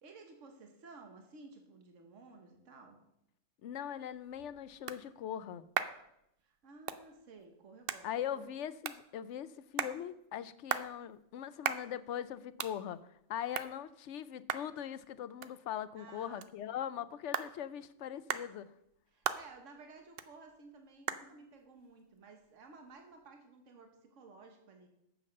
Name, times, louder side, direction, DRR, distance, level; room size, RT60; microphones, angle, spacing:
voice 1, 0.0-3.0 6.4-8.4 15.9-16.5 19.1-24.9, right 3 dB, 75° right, 4 dB, 1.6 m, -55 dB
voice 2, 3.6-5.6 8.0-13.0 13.3-18.7, left 10 dB, 70° left, 16 dB, 0.9 m, -41 dB
sound 1, 4.0-23.3, right 8 dB, 55° right, 0.7 m, -43 dB
9.1 x 7.2 x 6.5 m, 0.79 s
omnidirectional pair, 1.3 m